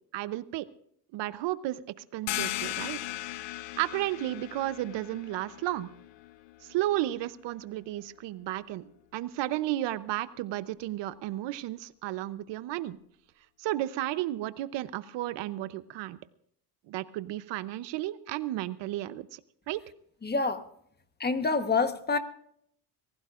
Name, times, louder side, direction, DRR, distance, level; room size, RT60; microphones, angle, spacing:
voice 1, 0.1-0.7 1.1-1.8 2.1-3.0 3.8-5.9 6.6-13.0 13.6-16.2 16.9-19.4 19.7-19.8, right 15 dB, 85° right, 15 dB, 0.8 m, -33 dB
sound 1, 2.3-7.6, left 15 dB, 80° left, 0.8 m, -38 dB
voice 2, 20.2-20.6 21.2-22.2, left 4 dB, 25° left, 9 dB, 1.2 m, -27 dB
24.5 x 16.5 x 2.5 m, 0.67 s
cardioid pair, 105°, 42 cm